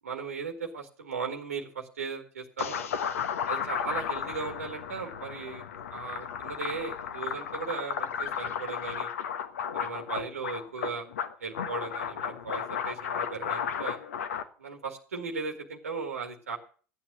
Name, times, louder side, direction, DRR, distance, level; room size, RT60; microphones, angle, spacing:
voice 1, 0.0-2.9 3.5-5.6 5.9-9.1 9.7-11.1 11.4-14.0 14.6-16.6, right 5 dB, 85° right, 2 dB, 2.0 m, -37 dB
sound 1, 2.6-14.4, left 8 dB, 80° left, 1.4 m, -34 dB
13.5 x 8.8 x 6.1 m, 0.39 s
hypercardioid pair, 75°, 8 cm